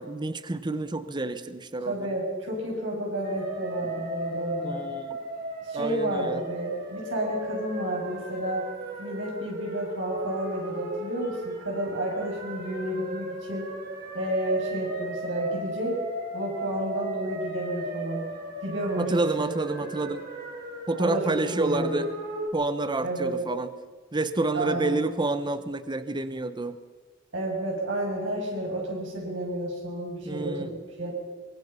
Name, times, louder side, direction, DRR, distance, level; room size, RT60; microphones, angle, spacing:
voice 1, 0.0-2.0 4.6-5.2 5.7-6.4 19.0-20.2 20.9-22.1 22.5-23.7 24.1-26.8 30.3-30.7, right 2 dB, 25° right, 11 dB, 0.9 m, -29 dB
voice 2, 1.9-4.9 5.6-8.6 9.0-13.7 14.1-16.0 16.3-18.3 18.6-19.5 21.0-22.0 23.0-23.4 24.5-25.1 27.3-31.1, right 1 dB, 70° right, -2 dB, 6.7 m, -31 dB
sound 1, 3.2-22.5, right 1 dB, 50° right, 4.8 m, -36 dB
24.0 x 22.5 x 5.6 m, 1.5 s
head